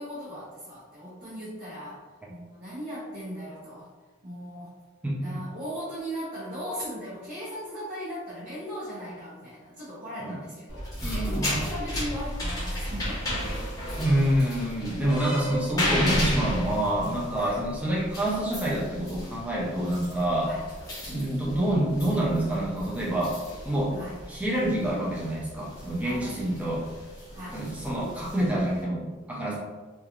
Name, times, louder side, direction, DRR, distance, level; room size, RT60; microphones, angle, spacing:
voice 1, 0.0-3.9 4.2-4.7 5.2-13.6 17.3-17.6 20.5-20.7 23.9-24.2 26.0-26.5 27.3-27.6, equal, 40° right, -10 dB, 0.8 m, -38 dB
voice 2, 5.0-5.4 10.2-10.4 11.0-11.6 14.0-20.5 21.1-23.4 23.7-24.0 24.3-26.9 27.5-29.6, right 1 dB, 5° right, -5 dB, 0.4 m, -27 dB
sound 1, 10.7-28.8, equal, 15° left, 0.7 m, -34 dB
2.9 x 2.3 x 2.4 m, 1.3 s
head